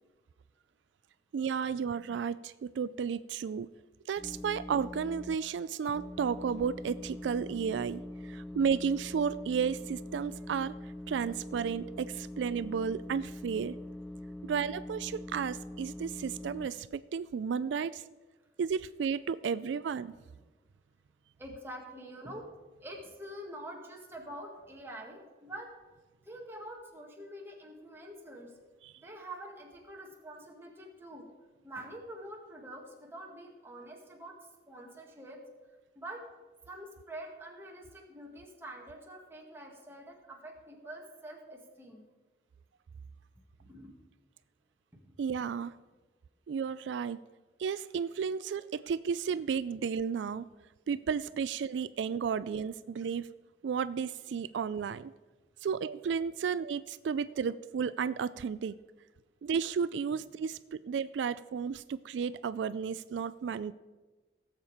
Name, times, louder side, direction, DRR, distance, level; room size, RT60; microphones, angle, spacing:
voice 1, 1.3-3.7 4.1-13.8 14.4-18.0 18.6-20.2 28.8-28.9 45.2-45.7 46.5-47.2 47.6-50.5 50.9-53.3 53.6-55.1 55.6-58.8 59.4-63.7, right 6 dB, 85° right, 15 dB, 0.3 m, -33 dB
sound 1, 4.2-5.4 5.9-16.7, left 1 dB, 5° left, 0.4 m, -43 dB
voice 2, 21.4-22.5 22.8-25.7 26.3-28.5 29.0-31.3 31.6-34.4 34.7-35.4 36.0-36.2 36.7-42.0 43.6-43.9 45.0-45.1, right 1 dB, 15° right, 0 dB, 1.9 m, -46 dB
17.0 x 7.4 x 4.9 m, 1.3 s
head